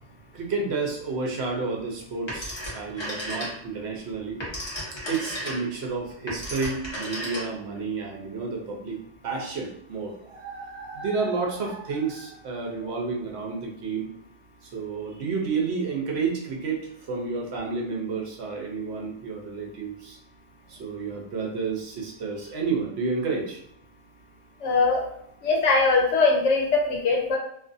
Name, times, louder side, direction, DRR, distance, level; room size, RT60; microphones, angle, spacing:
voice 1, 0.3-4.4 4.7-4.8 5.1-14.1 14.6-20.2 20.7-23.6, right 4 dB, 65° right, 0 dB, 0.9 m, -30 dB
Telephone, 2.3-3.8 4.2-7.8, equal, 25° left, 0.8 m, -34 dB
voice 2, 24.6-25.0 25.4-27.4, left 3 dB, 80° left, 0 dB, 1.1 m, -21 dB
2.6 x 2.4 x 2.5 m, 0.70 s
omnidirectional pair, 1.2 m